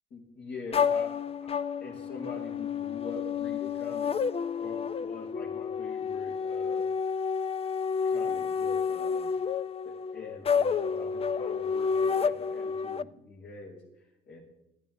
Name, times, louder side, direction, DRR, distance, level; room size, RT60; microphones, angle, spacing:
voice 1, 0.1-1.5 1.8-4.2 4.6-6.9 8.0-9.4 9.8-14.4, left 3 dB, 75° left, -3 dB, 5.9 m, -44 dB
sound 1, 0.7-13.0, left 6 dB, 30° left, 0.5 m, -30 dB
20.0 x 14.5 x 3.8 m, 0.88 s
cardioid pair, 85°, 19 cm